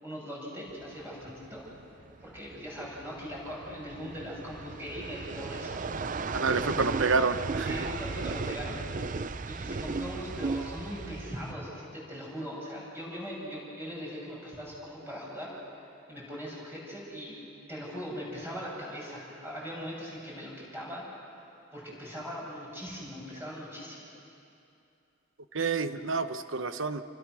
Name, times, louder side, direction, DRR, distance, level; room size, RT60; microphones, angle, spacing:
voice 1, 0.0-1.6 2.2-5.9 6.6-6.7 7.7-8.8 9.5-15.5 15.8-17.4 17.7-21.1 21.7-24.1, equal, 10° right, -5 dB, 6.5 m, -40 dB
sound 1, 0.7-11.5, right 4 dB, 40° right, 0.5 m, -36 dB
voice 2, 6.3-7.9 25.5-27.0, right 4 dB, 70° right, 10 dB, 1.0 m, -28 dB
28.0 x 25.0 x 6.3 m, 2.7 s
head